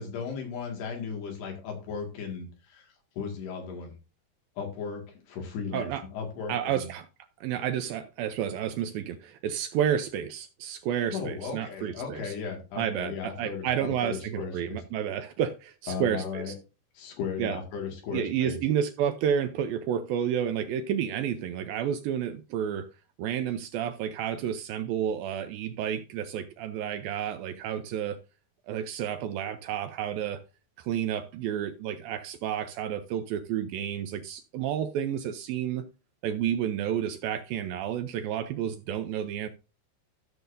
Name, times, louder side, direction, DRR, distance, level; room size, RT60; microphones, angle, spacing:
voice 1, 0.0-4.0 4.6-6.9 11.1-14.8 15.9-16.5 16.9-18.6, left 6 dB, 80° left, 4.1 m, -36 dB
voice 2, 6.5-7.1 7.4-12.3 12.8-16.5 17.4-17.6 18.1-22.9 23.2-28.2 28.7-30.4 30.8-35.8 36.2-39.5, right 9 dB, 80° right, 2.2 m, -30 dB
14.0 x 6.8 x 2.6 m
omnidirectional pair, 4.6 m